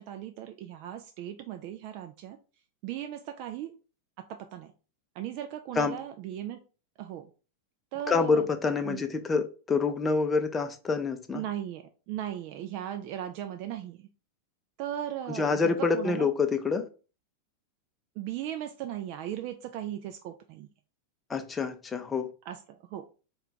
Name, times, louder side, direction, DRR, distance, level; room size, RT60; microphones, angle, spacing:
voice 1, 0.0-2.4 2.8-3.7 4.2-4.7 5.1-6.6 7.0-7.3 7.9-8.5 8.8-9.0 11.3-14.1 14.8-16.3 18.2-20.7 22.5-23.1, right 11 dB, 45° right, 0.3 m, -37 dB
voice 2, 8.1-11.4 15.3-16.8 21.3-22.3, left 4 dB, 15° left, 0.5 m, -27 dB
4.4 x 2.3 x 3.7 m
figure-of-eight pair, 90°, 0 cm